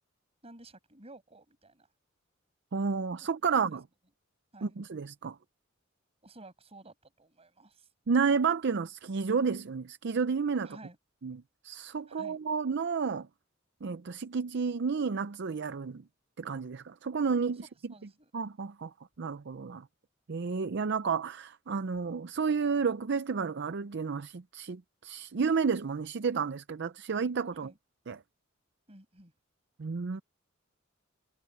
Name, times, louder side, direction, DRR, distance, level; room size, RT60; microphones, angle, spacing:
voice 1, 0.4-1.9 3.5-3.6 4.5-4.8 6.2-7.9 10.6-11.0 12.1-12.4 17.9-18.4 27.5-27.8 28.9-29.3, right 2 dB, 30° right, 6.0 m, -53 dB
voice 2, 2.7-3.8 4.6-5.4 8.1-10.8 11.2-13.3 13.8-16.0 16.4-17.6 18.3-18.9 19.2-19.8 20.3-27.7 28.1-28.2 29.8-30.2, right 5 dB, 60° right, 0.5 m, -31 dB
head